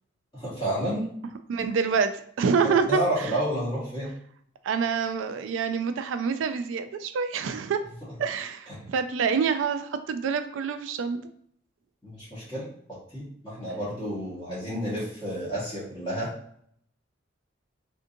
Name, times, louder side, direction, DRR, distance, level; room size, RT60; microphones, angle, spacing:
voice 1, 0.3-1.0 2.9-4.1 8.7-8.8 12.0-12.6 12.9-16.3, right 1 dB, 25° left, -10 dB, 1.4 m, -30 dB
voice 2, 1.5-2.1 2.4-3.3 4.6-7.8 8.2-11.2, right 6 dB, 75° right, 9 dB, 0.3 m, -26 dB
3.5 x 2.6 x 2.6 m, 0.66 s
head